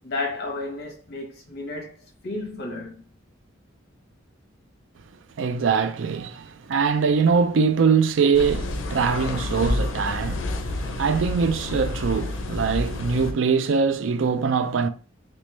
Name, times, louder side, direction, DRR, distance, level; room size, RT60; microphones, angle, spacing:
voice 1, 0.0-3.0, left 2 dB, 55° left, 1.0 m, -32 dB
voice 2, 5.4-14.9, right 5 dB, 75° right, 0.4 m, -22 dB
sound 1, 8.3-13.3, left 2 dB, 85° left, 0.5 m, -29 dB
3.1 x 3.1 x 3.2 m
head